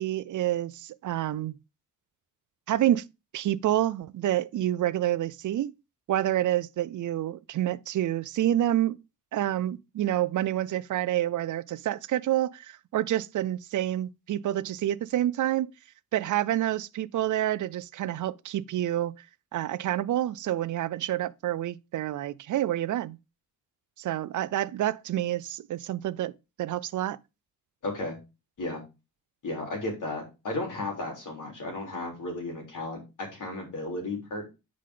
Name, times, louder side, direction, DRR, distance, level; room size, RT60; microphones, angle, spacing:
voice 1, 0.0-1.5 2.7-3.0 3.3-5.7 6.1-9.0 9.3-15.7 16.1-19.1 19.5-23.2 24.0-26.3 26.6-27.2, right 13 dB, 55° right, 0.5 m, -28 dB
voice 2, 27.8-28.2 28.6-28.8 29.4-34.5, left 2 dB, 55° left, 3.7 m, -34 dB
9.4 x 5.0 x 3.8 m
cardioid pair, 140°, 36 cm